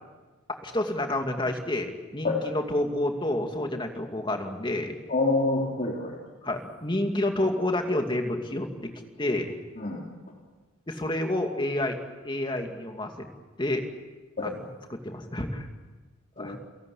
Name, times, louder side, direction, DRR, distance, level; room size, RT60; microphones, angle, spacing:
voice 1, 0.5-5.0 6.4-8.9 9.2-9.5 10.9-12.0 12.2-13.3 13.6-13.8 14.4-14.5 14.9-15.7 16.4-16.6, left 1 dB, 25° left, 4 dB, 2.5 m, -29 dB
voice 2, 5.1-6.2 9.8-10.1 14.4-14.5 16.4-16.6, left 2 dB, 40° left, -1 dB, 3.3 m, -27 dB
29.0 x 18.0 x 8.6 m, 1.2 s
head